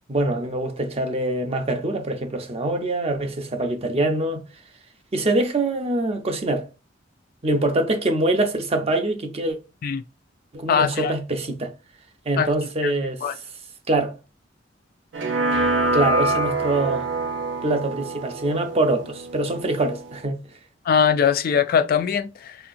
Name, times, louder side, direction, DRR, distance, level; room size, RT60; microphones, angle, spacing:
voice 1, 0.1-4.4 5.1-6.7 7.4-9.6 10.5-11.7 12.3-13.2 13.9-14.2 15.9-17.0 17.6-20.4, right 2 dB, 35° right, 0.6 m, -24 dB
voice 2, 10.7-11.1 12.4-12.5 12.8-12.9 13.2-13.3 20.9-22.6, left 7 dB, 50° left, 0.3 m, -21 dB
sound 1, 15.1-20.2, right 2 dB, 75° right, 0.6 m, -25 dB
4.2 x 2.8 x 2.5 m
head